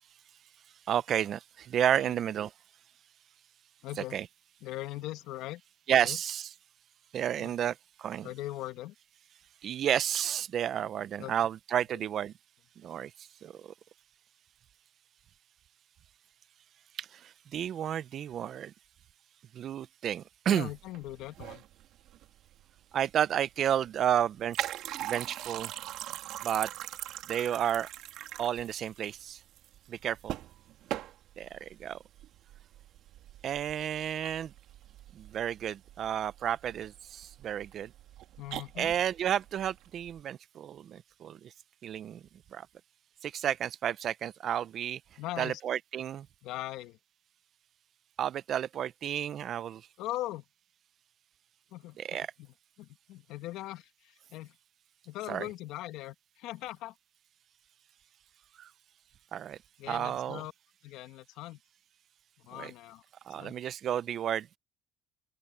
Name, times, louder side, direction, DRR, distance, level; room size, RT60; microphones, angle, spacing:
voice 1, 0.9-2.5 4.1-4.3 5.9-6.5 7.1-8.3 9.6-12.3 12.8-13.1 13.4-13.7 17.0-18.7 19.5-20.7 22.9-24.7 25.0-25.7 26.4-26.7 27.3-27.9 28.4-29.4 29.9-30.4 31.4-32.0 33.4-34.5 35.1-37.9 38.8-41.5 41.8-42.2 42.5-42.7 43.2-45.0 45.4-46.3 48.2-49.8 52.0-52.3 55.3-55.5 58.6-58.7 59.3-59.6 59.9-60.4 62.5-62.7 63.3-64.5, right 10 dB, 55° right, 0.7 m, -31 dB
voice 2, 3.8-4.2 4.6-5.6 6.0-6.2 7.4-7.7 8.2-8.9 11.2-11.3 11.9-12.0 20.5-21.6 38.4-38.9 45.2-45.6 46.4-47.0 50.0-50.4 51.7-54.6 55.1-56.9 59.8-60.5 60.8-61.6 62.4-63.0 63.4-63.6, left 16 dB, 75° left, 1.8 m, -40 dB
sound 1, 20.7-40.2, right 13 dB, 70° right, 2.2 m, -42 dB
open air
supercardioid pair, 95°, 0 cm